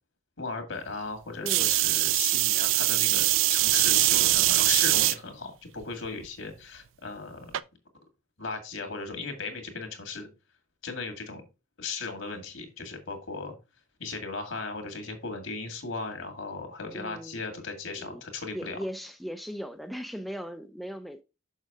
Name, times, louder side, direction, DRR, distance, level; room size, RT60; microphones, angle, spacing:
voice 1, 0.4-7.6 8.4-10.3 10.8-11.4 11.8-13.5 14.0-18.8, left 4 dB, 65° left, 2.0 m, -37 dB
sound 1, 1.5-5.2 5.8-6.3 7.5-7.6, right 17 dB, 65° right, 0.4 m, -23 dB
voice 2, 16.9-17.4 17.9-18.2 18.5-21.2, equal, ahead, 0.4 m, -38 dB
6.4 x 6.3 x 3.6 m
head